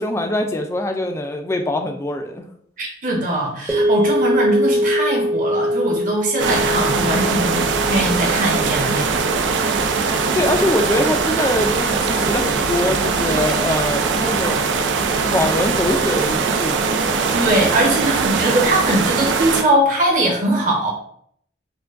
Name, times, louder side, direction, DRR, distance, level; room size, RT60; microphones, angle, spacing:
voice 1, 0.0-2.4 10.3-14.6 15.2-17.4, left 1 dB, 15° left, 4 dB, 0.3 m, -23 dB
voice 2, 2.8-9.2 17.3-20.9, right 1 dB, 45° right, -1 dB, 1.0 m, -21 dB
sound 1, 3.7-12.0, equal, 10° right, 0.7 m, -24 dB
sound 2, 6.4-19.6, right 4 dB, 80° right, 0.4 m, -21 dB
4.5 x 2.2 x 2.5 m, 0.64 s
head